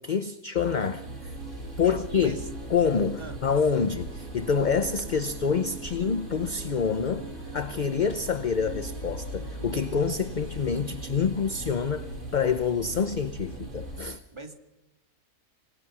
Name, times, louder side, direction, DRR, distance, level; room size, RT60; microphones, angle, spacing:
voice 1, 0.0-1.3 1.8-2.4 2.7-14.2, left 6 dB, 40° left, 11 dB, 0.8 m, -27 dB
sound 1, 0.5-14.0, right 4 dB, 35° right, 2.9 m, -42 dB
sound 2, 1.1-14.0, left 1 dB, 75° left, 4.0 m, -42 dB
voice 2, 1.4-2.5 3.2-3.4 14.3-14.5, right 2 dB, 20° right, 5 dB, 2.2 m, -43 dB
27.0 x 18.5 x 6.2 m, 0.95 s
omnidirectional pair, 1.5 m